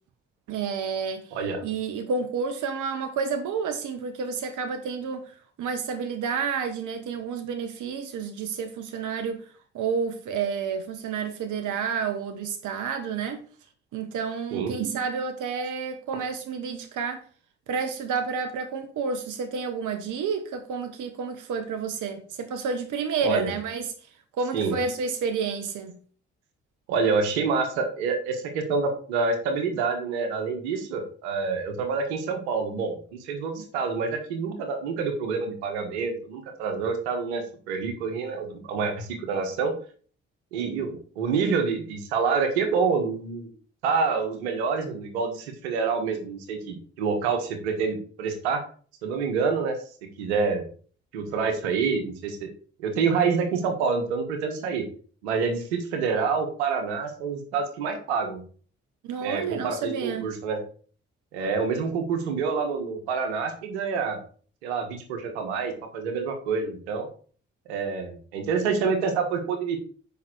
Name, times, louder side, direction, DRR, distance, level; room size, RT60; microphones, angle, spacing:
voice 1, 0.5-1.4 1.6-9.4 9.7-13.4 13.9-17.2 17.7-23.9 24.3-26.0 59.0-60.3, right 5 dB, 70° right, 1.4 m, -30 dB
voice 2, 1.3-1.6 14.5-14.7 23.2-23.5 24.5-24.8 26.9-39.7 40.5-43.5 43.8-48.6 49.0-49.8 50.2-50.6 51.1-52.5 52.8-54.8 55.2-58.4 59.2-60.6 61.3-64.2 64.6-67.1 67.7-69.8, right 5 dB, 90° right, 1.6 m, -27 dB
8.5 x 5.8 x 6.1 m
hypercardioid pair, 45°, 32 cm